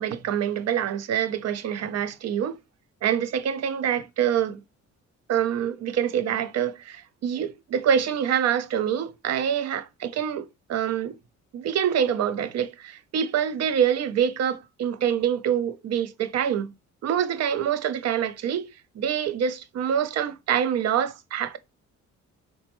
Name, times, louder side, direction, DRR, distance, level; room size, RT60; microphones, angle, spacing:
voice 1, 0.0-2.6 3.0-4.6 5.3-11.2 11.5-16.7 17.0-18.7 19.0-21.6, right 9 dB, 60° right, 0.5 m, -26 dB
4.1 x 2.1 x 2.9 m
cardioid pair, 90°, 30 cm